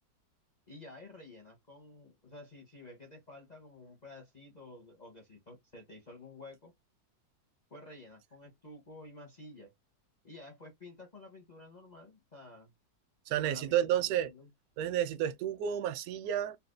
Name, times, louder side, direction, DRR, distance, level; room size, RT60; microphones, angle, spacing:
voice 1, 0.7-6.7 7.7-9.7 10.2-12.7 13.4-14.5, left 2 dB, 50° left, 0.5 m, -51 dB
voice 2, 13.3-14.3 14.8-16.6, right 10 dB, 75° right, 0.9 m, -31 dB
4.1 x 2.3 x 2.4 m
omnidirectional pair, 2.0 m